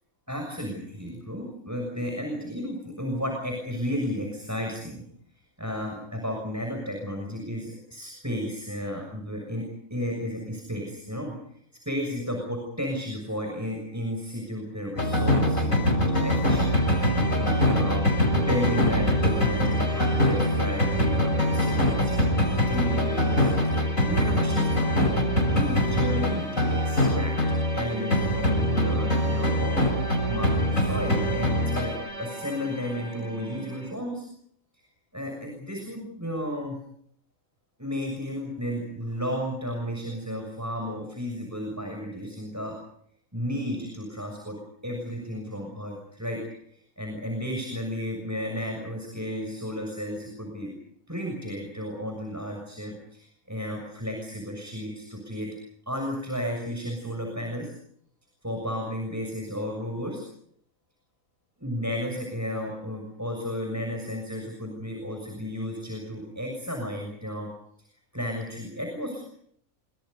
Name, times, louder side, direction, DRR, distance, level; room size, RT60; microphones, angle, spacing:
voice 1, 0.3-5.0 5.6-11.3 11.8-17.0 17.3-25.2 25.4-27.3 27.7-34.3 35.1-36.8 37.8-42.8 43.3-44.6 44.8-46.4 46.7-50.7 51.1-55.5 55.9-57.7 58.4-60.2 61.6-67.5 68.1-69.2, equal, 10° right, 2 dB, 6.8 m, -33 dB
sound 1, 15.0-27.9 28.1-32.0, left 1 dB, 75° left, 7.3 m, -24 dB
sound 2, 16.5-33.9, right 2 dB, 30° right, 4.3 m, -35 dB
29.5 x 26.0 x 5.4 m, 0.67 s
omnidirectional pair, 1.4 m